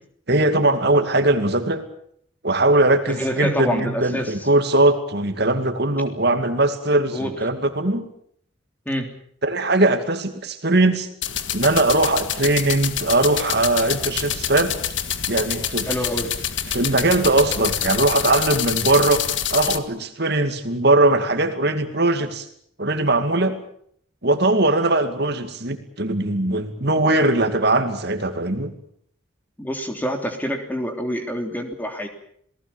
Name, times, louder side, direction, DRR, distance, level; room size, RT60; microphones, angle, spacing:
voice 1, 0.3-1.8 2.4-8.0 9.4-11.1 11.5-14.7 15.3-15.9 16.7-19.2 19.5-22.5 22.8-23.6 24.2-28.7, right 2 dB, 55° right, 7 dB, 2.4 m, -20 dB
voice 2, 3.2-4.5 7.1-7.3 8.8-9.1 15.9-16.3 29.6-32.1, equal, 10° left, 4 dB, 3.3 m, -26 dB
sound 1, 11.2-19.8, left 9 dB, 65° left, 1.7 m, -26 dB
28.5 x 19.0 x 7.1 m, 0.65 s
head